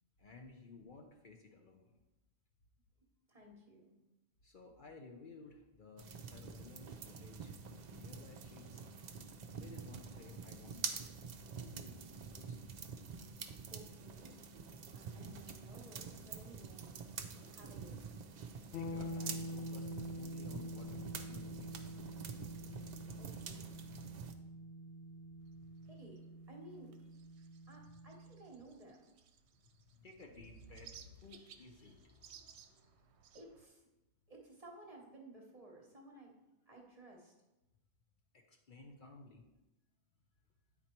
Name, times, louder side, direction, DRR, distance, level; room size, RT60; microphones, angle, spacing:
voice 1, 0.2-2.0 4.4-8.8 9.5-10.8 11.7-12.0 12.4-12.8 18.5-21.9 25.6-25.9 29.5-33.1 38.3-39.4, left 3 dB, 50° left, 2 dB, 0.9 m, -56 dB
voice 2, 3.3-3.9 13.7-14.4 14.9-16.9 17.5-18.2 23.2-23.6 25.9-27.0 27.7-29.1 33.3-33.9 34.3-36.3 36.7-37.3, right 1 dB, 35° right, 0 dB, 1.1 m, -56 dB
sound 1, 6.0-24.3, right 5 dB, 50° right, 0.6 m, -47 dB
sound 2, 18.7-28.5, equal, 80° left, 1.0 m, -46 dB
sound 3, 25.5-33.7, right 9 dB, 80° right, 0.8 m, -61 dB
9.2 x 4.2 x 4.4 m, 0.99 s
omnidirectional pair, 1.1 m